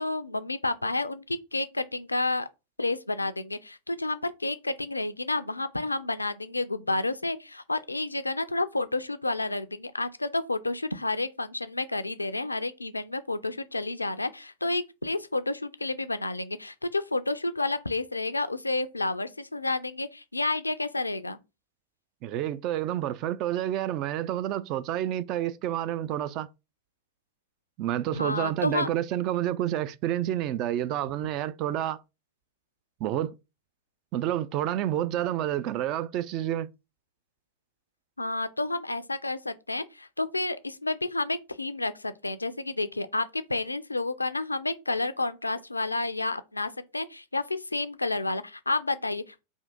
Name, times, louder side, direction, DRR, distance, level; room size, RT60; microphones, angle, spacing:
voice 1, 0.0-2.5 2.8-21.4 28.1-28.9 38.2-49.4, left 2 dB, 80° left, 0.3 m, -30 dB
voice 2, 22.2-26.5 27.8-32.0 33.0-33.3 34.1-36.7, right 12 dB, 40° right, 0.3 m, -29 dB
3.5 x 2.6 x 3.5 m
figure-of-eight pair, 90°, 0 cm